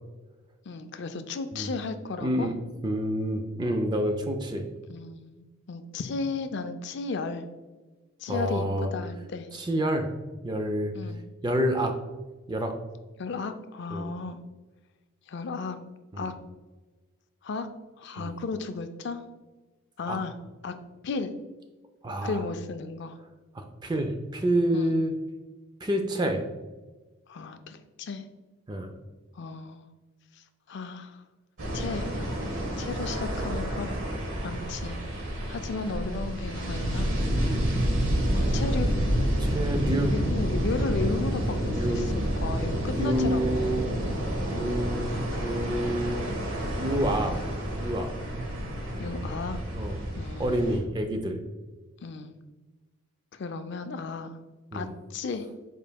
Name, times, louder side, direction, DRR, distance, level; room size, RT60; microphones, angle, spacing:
voice 1, 0.7-2.5 4.9-7.4 8.2-8.7 8.9-9.5 10.9-11.2 13.2-14.4 15.3-15.8 16.2-16.3 17.4-17.7 18.0-19.2 20.0-20.3 20.6-20.7 21.0-21.3 22.2-23.2 24.7-24.9 27.3-28.2 29.4-29.8 30.4-31.2 31.7-32.1 32.8-33.9 34.4-35.0 35.5-37.1 38.3-38.9 40.1-43.7 47.3-47.4 49.0-49.6 50.2-50.6 52.0-52.3 53.3-54.4 54.7-55.5, left 4 dB, 55° left, 9 dB, 0.4 m, -34 dB
voice 2, 2.2-2.6 2.8-4.6 8.3-8.9 9.5-10.1 10.4-10.9 11.4-11.9 12.5-12.7 13.9-14.1 16.1-16.3 18.2-18.3 20.1-20.2 22.0-22.4 23.5-25.1 25.8-26.4 28.7-28.9 34.4-34.5 39.4-40.5 41.7-42.0 42.9-43.8 44.5-45.0 45.4-46.3 46.8-47.4 47.8-48.1 49.8-50.1 50.4-51.4 54.7-54.9, right 1 dB, 20° right, 5 dB, 0.3 m, -28 dB
sound 1, 31.6-50.8, equal, 65° right, 1.1 m, -29 dB
5.3 x 4.5 x 2.2 m, 1.2 s
head